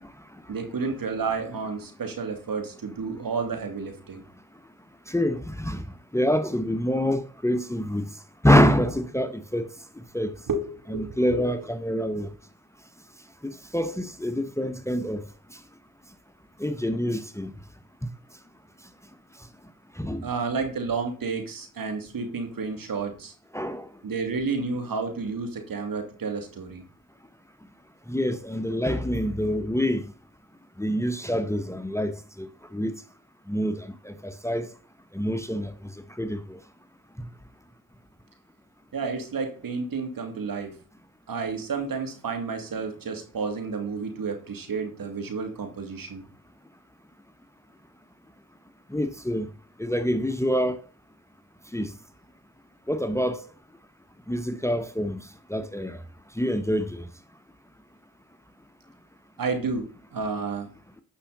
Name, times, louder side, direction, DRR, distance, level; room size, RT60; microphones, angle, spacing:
voice 1, 0.5-4.2 10.5-11.5 12.2-12.3 20.2-23.3 24.0-26.8 38.9-40.8 41.3-46.3 59.4-60.7, right 4 dB, 60° right, 2.6 m, -31 dB
voice 2, 5.1-5.9 6.1-8.1 8.4-9.7 10.1-10.3 10.9-12.3 13.7-15.2 16.6-17.5 20.0-20.2 23.5-23.9 28.1-30.0 30.8-32.1 32.4-32.5 32.7-32.9 33.5-34.7 35.1-35.7 36.2-36.4 48.9-49.5 49.8-50.8 51.7-51.9 52.9-53.4 54.3-55.2 55.5-56.0 56.4-56.9, equal, 5° left, 1.0 m, -25 dB
10.0 x 5.7 x 4.1 m
supercardioid pair, 45°, 39 cm